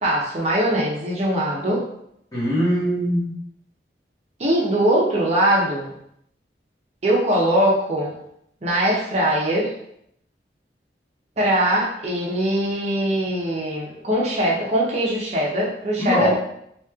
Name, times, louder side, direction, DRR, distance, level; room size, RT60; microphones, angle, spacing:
voice 1, 0.0-1.8 4.4-5.9 7.0-8.2 8.6-9.7 11.4-16.3, right 1 dB, 40° right, -4 dB, 0.7 m, -21 dB
voice 2, 2.3-3.3 16.0-16.3, equal, 20° left, -8 dB, 1.2 m, -21 dB
3.1 x 2.8 x 3.5 m, 0.74 s
head